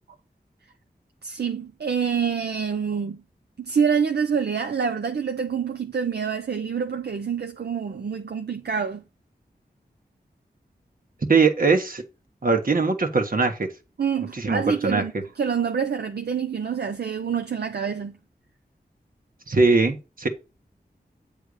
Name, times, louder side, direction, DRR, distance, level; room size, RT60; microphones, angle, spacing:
voice 1, 1.2-3.2 3.6-9.0 14.0-18.1, right 6 dB, 75° right, 0.6 m, -26 dB
voice 2, 11.3-12.0 12.4-13.7 14.3-15.0 19.5-20.3, right 4 dB, 55° right, 1.4 m, -21 dB
8.1 x 3.4 x 6.4 m
wide cardioid pair, 60°, 17 cm